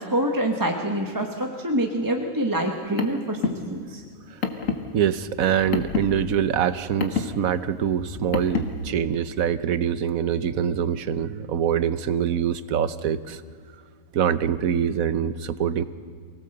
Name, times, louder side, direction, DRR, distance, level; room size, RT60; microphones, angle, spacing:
voice 1, 0.0-4.0, right 1 dB, 15° right, 3 dB, 1.3 m, -26 dB
Car, 2.6-8.9, left 5 dB, 65° left, 1.9 m, -30 dB
voice 2, 4.9-13.4 14.1-15.8, right 8 dB, 75° right, 14 dB, 1.3 m, -24 dB
24.5 x 18.0 x 7.9 m, 2.1 s
omnidirectional pair, 1.5 m